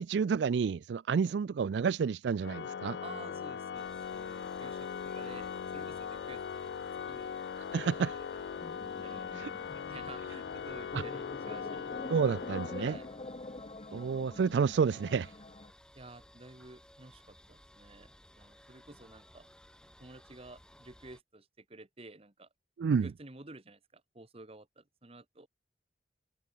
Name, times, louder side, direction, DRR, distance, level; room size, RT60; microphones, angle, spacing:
voice 1, 0.0-3.0 7.7-8.2 9.4-9.5 12.1-13.0 13.9-15.3 22.8-23.1, right 6 dB, 70° right, 0.4 m, -29 dB
Organ, 2.4-13.4, left 7 dB, 65° left, 0.3 m, -40 dB
voice 2, 3.0-7.4 7.7-11.9 12.8-13.1 15.9-18.1 18.4-19.5 20.0-22.5 23.0-25.5, right 2 dB, 35° right, 1.4 m, -52 dB
sound 1, 3.7-21.2, equal, 5° left, 4.5 m, -59 dB
sound 2, 8.6-15.7, left 2 dB, 30° left, 0.9 m, -46 dB
head